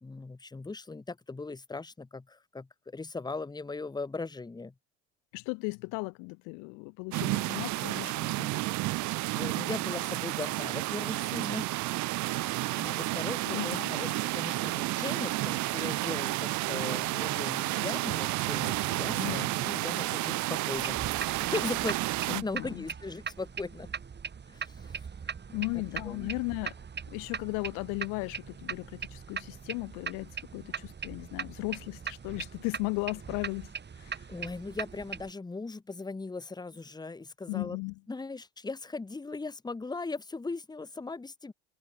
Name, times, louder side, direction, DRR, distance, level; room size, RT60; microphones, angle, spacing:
voice 1, 0.0-4.7 9.0-11.7 12.2-22.0 22.3-23.9 24.5-25.0 25.5-25.6 26.1-26.3 34.3-37.8 38.1-41.5, left 3 dB, 15° left, 1.2 m, -39 dB
voice 2, 5.3-8.5 13.5-14.1 19.1-19.5 22.3-22.8 25.5-26.7 27.1-33.7 34.0-34.3 37.5-38.0, left 32 dB, 75° left, 1.0 m, -36 dB
sound 1, 7.1-22.4, right 19 dB, 65° right, 1.3 m, -31 dB
sound 2, 20.7-35.3, right 6 dB, 35° right, 4.4 m, -40 dB
hypercardioid pair, 75°, 32 cm